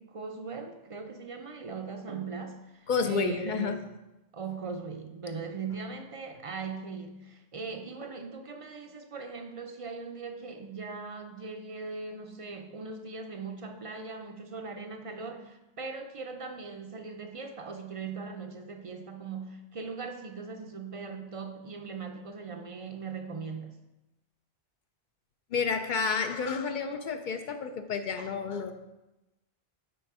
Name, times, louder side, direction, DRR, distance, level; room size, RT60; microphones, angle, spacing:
voice 1, 0.0-3.9 4.3-23.8, right 4 dB, 45° right, 5 dB, 0.5 m, -39 dB
voice 2, 2.9-3.8 25.5-28.7, left 5 dB, 60° left, 7 dB, 0.6 m, -30 dB
6.0 x 5.0 x 4.7 m, 0.99 s
omnidirectional pair, 1.1 m